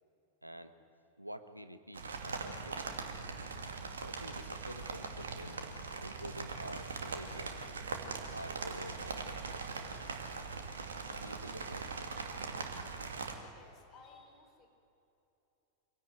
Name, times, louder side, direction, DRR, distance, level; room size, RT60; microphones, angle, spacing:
voice 1, 0.4-0.7 1.2-3.0 4.0-5.7 6.0-7.5 8.3-9.4 11.2-11.9, equal, 90° right, 10 dB, 1.3 m, -48 dB
sound 1, 1.9-13.3, right 4 dB, 70° right, 2.4 m, -41 dB
voice 2, 13.5-14.7, left 4 dB, 30° left, 3 dB, 4.4 m, -58 dB
25.5 x 17.5 x 9.3 m, 2.9 s
figure-of-eight pair, 90°, 0 cm